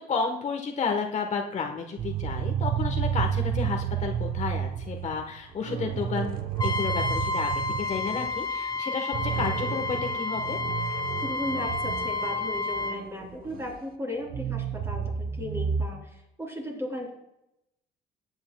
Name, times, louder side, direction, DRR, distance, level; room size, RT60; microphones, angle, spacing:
voice 1, 0.1-7.5 7.8-10.6, left 5 dB, 45° left, 3 dB, 1.3 m, -31 dB
sound 1, 2.0-8.4 8.7-8.8 9.1-13.7 14.2-15.9, right 8 dB, 60° right, 0.9 m, -31 dB
Trumpet, 6.6-13.0, left 3 dB, 25° left, 1.1 m, -30 dB
voice 2, 11.2-17.1, left 1 dB, 15° right, -1 dB, 3.7 m, -36 dB
15.0 x 9.6 x 2.3 m, 0.83 s
cardioid pair, 110°, 17 cm